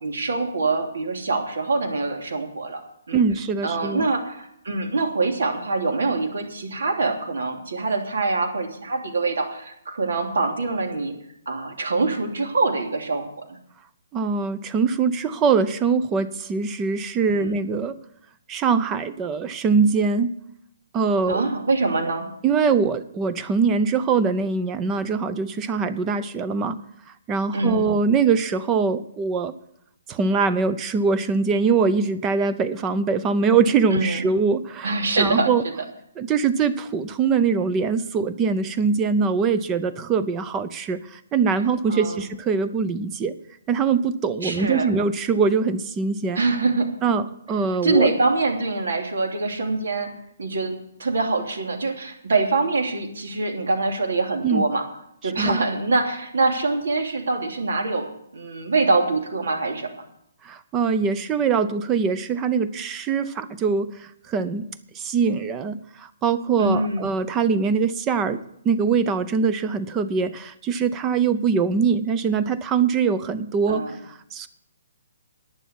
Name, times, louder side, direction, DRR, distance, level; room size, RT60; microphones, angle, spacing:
voice 1, 0.0-2.8 3.1-3.2 3.6-11.1 11.4-13.6 17.3-17.6 21.3-22.3 27.5-27.9 33.9-34.2 34.8-35.5 41.9-42.2 44.4-44.9 46.3-46.9 47.8-50.1 50.4-54.8 55.2-60.0 66.6-67.1 73.7-73.9, right 3 dB, 75° right, 3 dB, 3.2 m, -24 dB
voice 2, 3.1-4.1 14.1-18.0 18.5-20.3 20.9-21.5 22.4-26.8 27.3-29.5 30.1-35.6 36.2-43.3 43.7-46.4 47.0-48.1 54.4-54.6 55.4-55.6 60.4-64.7 64.9-74.5, right 5 dB, 15° right, 13 dB, 0.5 m, -23 dB
11.5 x 9.3 x 8.4 m, 0.74 s
hypercardioid pair, 175°, 0 cm